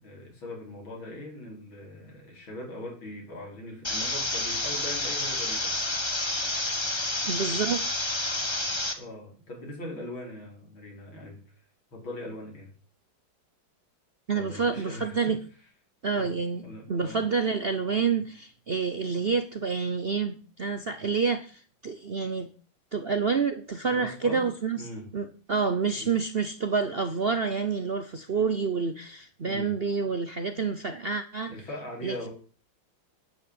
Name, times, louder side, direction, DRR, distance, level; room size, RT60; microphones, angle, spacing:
voice 1, 0.0-5.8 9.0-11.4 11.9-12.7 14.3-15.4 16.1-16.3 16.6-17.2 24.0-24.5 24.8-25.1 26.0-26.2 29.5-29.7 31.5-32.3, left 1 dB, 90° left, 5.8 m, -40 dB
sound 1, 3.8-8.9, left 2 dB, 15° left, 1.2 m, -29 dB
voice 2, 7.2-7.8 14.3-15.4 16.0-22.5 22.9-24.9 25.1-31.6 32.0-32.3, right 5 dB, 50° right, 0.7 m, -28 dB
10.5 x 9.7 x 7.9 m
omnidirectional pair, 2.1 m